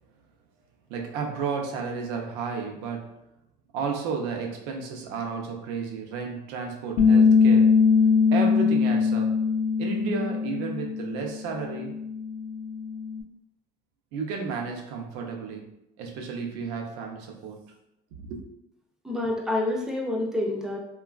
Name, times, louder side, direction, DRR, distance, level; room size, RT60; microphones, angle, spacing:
voice 1, 0.9-3.1 3.7-7.8 8.3-9.3 9.8-11.9 14.1-17.7 18.3-18.4, right 5 dB, 75° right, 2 dB, 0.6 m, -32 dB
Bass guitar, 7.0-11.3 11.6-13.2, left 5 dB, 80° left, 0.5 m, -21 dB
voice 2, 19.0-20.8, left 2 dB, 5° right, -1 dB, 0.3 m, -27 dB
3.0 x 2.3 x 2.3 m, 0.83 s
cardioid pair, 160°, 18 cm